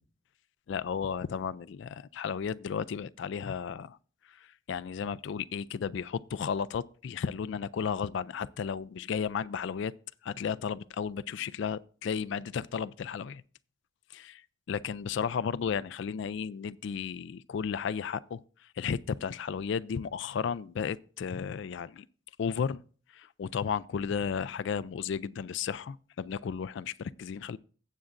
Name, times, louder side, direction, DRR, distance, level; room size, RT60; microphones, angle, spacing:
voice 1, 0.7-4.0 4.4-9.9 10.2-13.4 14.1-14.4 14.7-18.4 18.8-22.1 22.4-22.8 23.1-27.6, left 6 dB, 65° left, 0.3 m, -34 dB
16.5 x 7.6 x 2.5 m
head